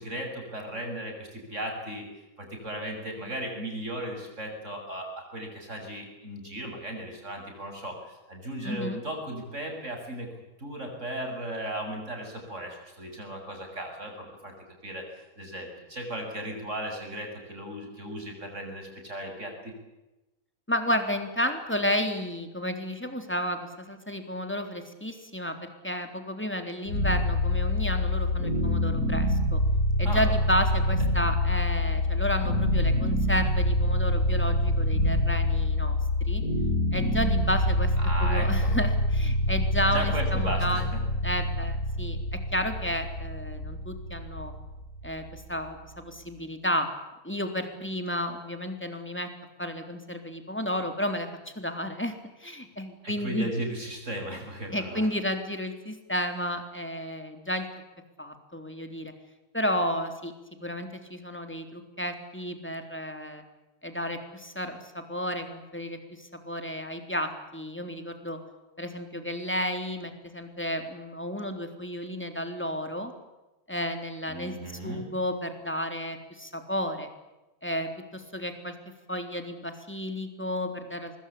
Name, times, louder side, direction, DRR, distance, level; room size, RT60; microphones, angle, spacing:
voice 1, 0.0-2.1 2.4-10.3 10.6-14.5 14.8-19.7 30.0-30.3 30.9-31.0 38.0-38.8 39.9-41.0 53.0-55.1 74.3-75.1, right 1 dB, 55° right, 2 dB, 7.7 m, -36 dB
voice 2, 8.6-9.0 20.7-29.6 30.0-36.0 36.2-36.4 36.9-37.9 38.2-40.9 41.2-44.5 45.0-46.9 47.2-49.3 49.6-52.1 52.4-53.5 54.7-57.7 58.2-59.1 59.5-60.3 60.6-63.4 63.8-68.4 68.8-73.1 73.7-74.6 74.8-77.1 77.6-78.8 79.1-81.1, equal, 5° left, 6 dB, 3.6 m, -32 dB
sound 1, 26.9-45.9, left 1 dB, 65° left, 4.1 m, -26 dB
24.5 x 22.5 x 8.6 m, 1.0 s
omnidirectional pair, 1.5 m